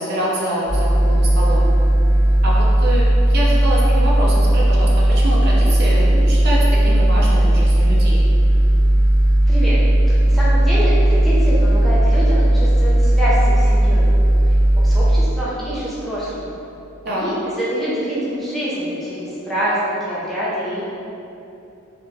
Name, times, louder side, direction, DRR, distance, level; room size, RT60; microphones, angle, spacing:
voice 1, 0.0-1.7 2.4-8.2 17.0-17.2, right 1 dB, 50° right, -5 dB, 0.7 m, -25 dB
sound 1, 0.7-15.2, right 1 dB, 75° right, 1.1 m, -15 dB
voice 2, 9.5-9.8 10.2-14.1 14.8-16.5 17.1-20.8, equal, ahead, -9 dB, 0.7 m, -25 dB
3.8 x 3.3 x 3.4 m, 2.8 s
head